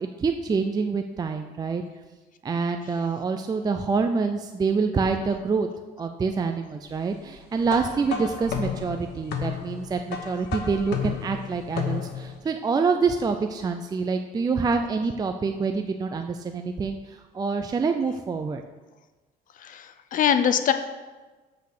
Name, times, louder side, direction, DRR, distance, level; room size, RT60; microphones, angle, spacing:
voice 1, 0.0-1.8 2.4-5.7 6.0-18.6, right 4 dB, 25° right, 6 dB, 0.4 m, -26 dB
Bassit Msarref Rhythm, 7.6-12.4, left 7 dB, 75° left, 1.1 m, -32 dB
voice 2, 19.6-20.7, left 8 dB, 50° left, 10 dB, 0.6 m, -23 dB
8.1 x 4.1 x 6.6 m, 1.3 s
cardioid pair, 110°, 17 cm